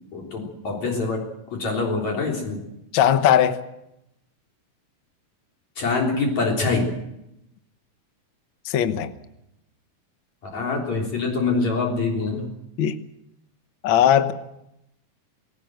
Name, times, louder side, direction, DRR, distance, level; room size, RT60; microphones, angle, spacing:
voice 1, 0.1-2.6 5.8-6.9 10.5-12.4, left 3 dB, 60° left, 5.0 m, -25 dB
voice 2, 2.9-3.6 8.7-9.1 12.8-13.0 13.8-14.3, left 10 dB, 80° left, 1.0 m, -18 dB
20.0 x 18.0 x 7.8 m
omnidirectional pair, 3.7 m